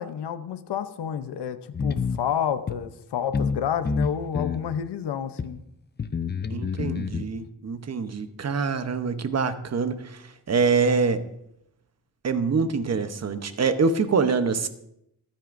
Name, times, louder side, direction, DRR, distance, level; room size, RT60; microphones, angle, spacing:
voice 1, 0.0-5.6, left 8 dB, 90° left, 10 dB, 0.8 m, -29 dB
sound 1, 1.7-2.2 2.7-2.8 3.3-3.6 3.8-4.6 5.4-5.5 6.0-7.2, left 5 dB, 25° left, 0.5 m, -27 dB
voice 2, 6.5-11.2 12.2-14.7, right 5 dB, 40° right, 9 dB, 0.9 m, -25 dB
14.5 x 13.0 x 2.6 m, 0.78 s
wide cardioid pair, 125°, 40 cm